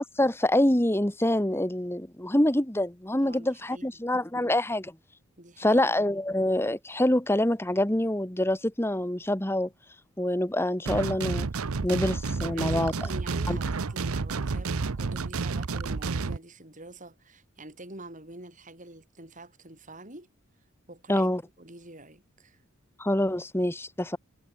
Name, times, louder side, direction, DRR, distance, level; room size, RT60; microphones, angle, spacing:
voice 1, 0.0-4.9 5.6-9.7 10.2-11.5 11.8-12.9 13.5-13.6 21.1-21.4 23.0-24.2, left 1 dB, 10° left, 1.4 m, -26 dB
voice 2, 3.2-3.9 4.3-4.5 5.4-5.8 6.1-6.2 12.4-20.3 20.9-22.6, right 2 dB, 35° right, 6.7 m, -46 dB
sound 1, 10.9-16.4, right 4 dB, 85° right, 0.8 m, -30 dB
head